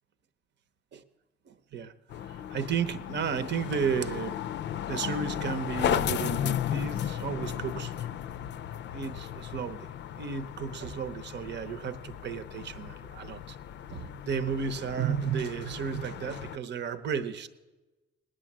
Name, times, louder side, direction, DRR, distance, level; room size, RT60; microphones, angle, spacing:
voice 1, 1.5-1.9 2.2-4.4 4.8-8.1 8.9-9.9 10.1-13.6 13.9-17.5, right 6 dB, 60° right, 12 dB, 1.0 m, -33 dB
sound 1, 2.1-16.6, left 10 dB, 65° left, 0.5 m, -35 dB
18.5 x 9.9 x 7.4 m, 1.2 s
cardioid pair, 90°, 20 cm